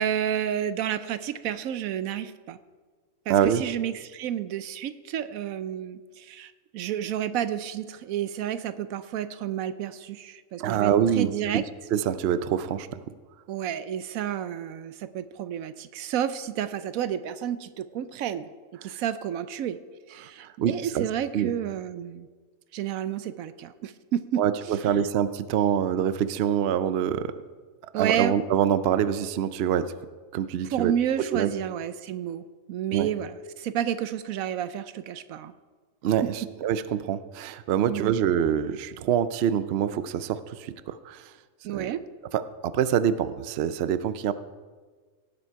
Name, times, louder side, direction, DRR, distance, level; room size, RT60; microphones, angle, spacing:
voice 1, 0.0-2.6 3.3-11.6 13.5-18.5 18.8-19.8 20.1-22.3 22.7-24.4 27.9-28.3 30.7-32.4 32.7-35.5 37.9-38.1 41.6-42.0, right 10 dB, 75° right, 13 dB, 1.0 m, -30 dB
voice 2, 3.3-3.6 10.6-11.6 11.9-13.0 18.8-19.0 20.2-21.1 21.3-21.5 24.4-27.4 28.0-29.9 30.3-30.9 31.3-31.5 32.9-33.1 36.0-41.3 41.7-41.9 42.3-44.3, right 9 dB, 60° right, 13 dB, 0.7 m, -25 dB
17.5 x 7.6 x 4.6 m, 1.4 s
omnidirectional pair, 1.5 m